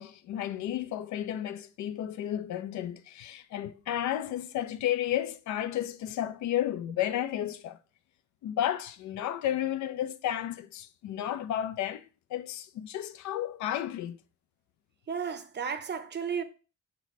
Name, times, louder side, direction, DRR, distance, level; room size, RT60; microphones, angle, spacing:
voice 1, 0.0-7.8 8.4-12.1 12.3-14.2, left 11 dB, 70° left, 0.4 m, -32 dB
voice 2, 15.1-16.4, right 6 dB, 35° right, 0.6 m, -33 dB
5.9 x 2.2 x 4.0 m
cardioid pair, 90°, 30 cm